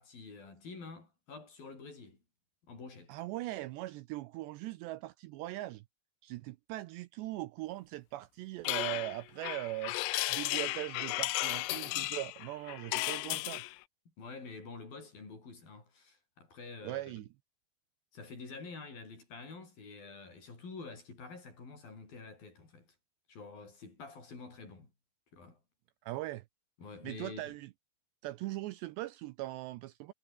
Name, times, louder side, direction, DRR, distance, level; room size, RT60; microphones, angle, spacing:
voice 1, 0.0-2.2 2.6-3.2 14.2-17.0 18.1-22.9 23.3-24.9 25.3-25.6 26.8-27.6, left 4 dB, 45° left, 8.9 m, -48 dB
voice 2, 3.1-5.8 6.2-10.0 10.3-13.6 16.8-17.3 26.0-26.4 27.0-27.7 28.2-30.1, right 17 dB, 85° right, 2.5 m, -40 dB
sound 1, 8.7-13.8, left 21 dB, 90° left, 3.4 m, -35 dB
omnidirectional pair, 5.7 m